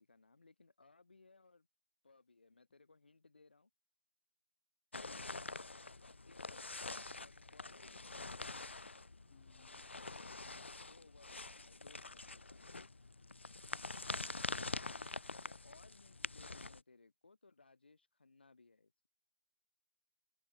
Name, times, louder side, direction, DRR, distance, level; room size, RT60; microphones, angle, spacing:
voice 1, 0.0-1.7 2.0-3.7 5.5-5.8 6.2-8.5 10.9-12.9 15.3-19.1, left 3 dB, 55° left, 5.1 m, -65 dB
sound 1, 4.9-16.8, left 3 dB, 70° left, 0.6 m, -46 dB
voice 2, 9.2-9.9 14.8-14.9, left 11 dB, 15° left, 0.7 m, -67 dB
figure-of-eight pair, 165°, 6 cm